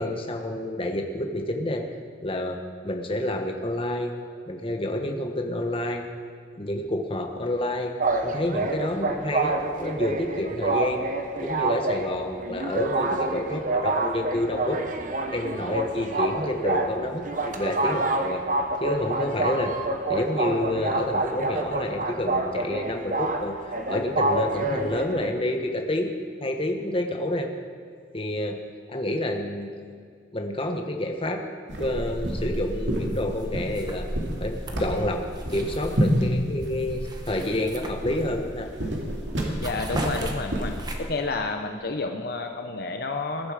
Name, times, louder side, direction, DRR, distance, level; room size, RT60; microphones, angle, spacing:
voice 1, 0.0-1.9 2.2-4.1 4.5-6.0 6.6-7.9 8.2-11.1 11.4-14.8 15.3-18.4 18.8-19.7 20.1-26.1 26.4-27.5 28.1-28.6 28.9-29.7 30.3-31.4 31.8-34.1 34.4-35.2 35.5-38.7, left 1 dB, 30° left, 4 dB, 1.2 m, -29 dB
sound 1, 8.0-25.3, right 2 dB, 45° right, 1.1 m, -28 dB
sound 2, 31.7-41.0, equal, 80° right, 2.4 m, -29 dB
sound 3, 33.1-33.4 33.7-36.2 36.6-38.5 38.9-39.1 39.4-41.3, right 1 dB, 20° right, 1.3 m, -39 dB
voice 2, 39.6-40.7 41.0-43.5, left 3 dB, 55° left, 4 dB, 0.8 m, -30 dB
20.5 x 11.0 x 5.0 m, 2.1 s
head